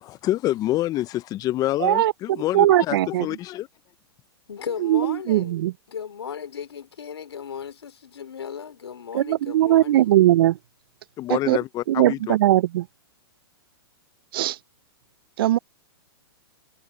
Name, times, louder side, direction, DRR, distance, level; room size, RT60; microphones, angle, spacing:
voice 1, 0.0-3.7 11.2-12.4, left 15 dB, 30° left, 0.7 m, -27 dB
voice 2, 1.8-2.1 2.5-3.3 4.8-5.7 9.1-10.6 11.5-11.6 11.9-12.8 14.3-14.6 15.4-15.6, right 14 dB, 65° right, 0.5 m, -19 dB
voice 3, 4.5-5.6 5.9-10.1, left 7 dB, 85° left, 3.1 m, -36 dB
hypercardioid pair, 120°, 13 cm